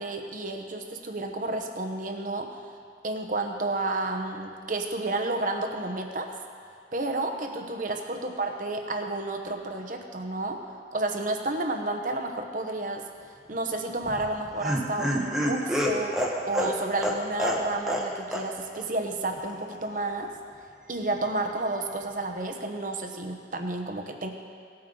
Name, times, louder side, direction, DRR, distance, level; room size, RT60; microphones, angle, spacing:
voice 1, 0.0-2.5 3.0-6.3 6.9-10.6 10.9-13.0 13.5-20.3 20.9-24.3, right 2 dB, 50° right, 4 dB, 1.0 m, -31 dB
Laughter, 14.0-18.1 18.3-18.4 18.7-18.8, equal, 5° right, 1.1 m, -27 dB
17.5 x 8.7 x 3.9 m, 2.2 s
head